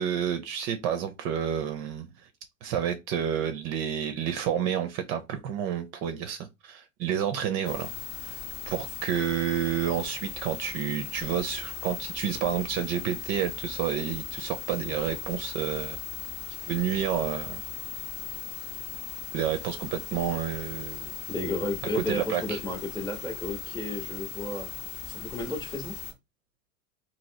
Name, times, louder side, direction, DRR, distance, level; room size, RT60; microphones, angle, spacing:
voice 1, 0.0-2.1 2.6-7.9 8.2-8.3 8.7-16.0 16.6-17.6 19.3-21.2 21.9-22.6, right 9 dB, 40° right, 0.5 m, -30 dB
sound 1, 7.6-26.1, left 9 dB, 50° left, 0.8 m, -38 dB
voice 2, 21.3-24.7 25.1-26.0, left 2 dB, 10° left, 0.8 m, -33 dB
3.0 x 2.8 x 2.7 m
hypercardioid pair, 110°, 39 cm